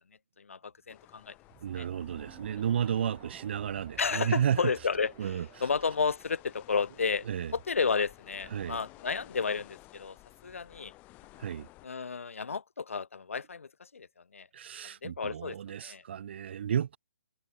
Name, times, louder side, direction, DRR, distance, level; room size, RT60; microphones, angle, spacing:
voice 1, 0.4-1.3 1.8-1.9 4.0-5.3 5.6-7.3 7.5-10.2 10.4-10.9 11.8-14.1 14.3-14.5 15.0-16.0, left 5 dB, 80° left, 5.3 m, -32 dB
sound 1, 0.9-11.9, left 20 dB, 20° left, 3.5 m, -55 dB
sound 2, 1.5-6.7, right 36 dB, 25° right, 2.6 m, -53 dB
voice 2, 1.6-4.6 5.2-5.5 7.3-7.5 8.5-8.8 11.4-11.7 14.5-17.0, right 9 dB, 55° right, 1.8 m, -32 dB
hypercardioid pair, 150°, 7 cm